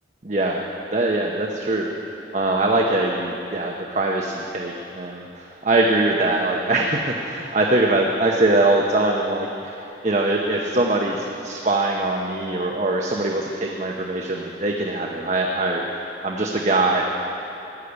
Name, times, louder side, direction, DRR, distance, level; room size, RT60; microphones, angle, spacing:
voice 1, 0.2-0.6 0.9-1.9 2.3-15.8 16.2-17.1, right 2 dB, 40° right, 0 dB, 0.9 m, -22 dB
15.0 x 10.0 x 8.1 m, 3.0 s
head